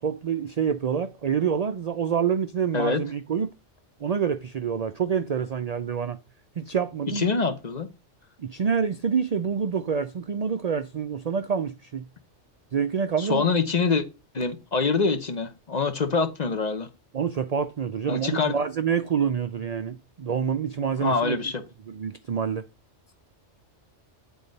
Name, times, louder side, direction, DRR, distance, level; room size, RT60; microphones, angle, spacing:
voice 1, 0.0-3.5 4.0-6.2 6.6-7.3 8.4-12.1 12.7-13.5 17.1-21.4 21.9-22.6, right 7 dB, 60° right, 0.4 m, -27 dB
voice 2, 7.1-7.9 13.2-14.0 14.3-16.9 18.1-18.6 21.0-21.6, left 4 dB, 40° left, 0.9 m, -25 dB
9.2 x 3.9 x 5.2 m
omnidirectional pair, 1.2 m